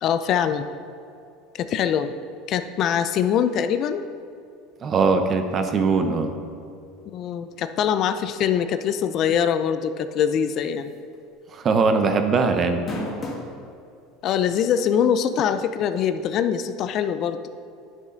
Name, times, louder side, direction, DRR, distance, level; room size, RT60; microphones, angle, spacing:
voice 1, 0.0-0.7 1.5-2.1 2.5-4.0 7.1-10.9 14.2-17.4, left 8 dB, 45° left, 10 dB, 0.4 m, -23 dB
voice 2, 4.8-6.3 11.5-12.9, right 4 dB, 30° right, 7 dB, 0.7 m, -21 dB
sound 1, 10.9-11.1 11.5-11.6 12.6-13.5 14.3-14.4 16.0-16.1, left 1 dB, 30° left, 1.6 m, -31 dB
9.7 x 6.2 x 3.9 m, 2.5 s
supercardioid pair, 130°, 0 cm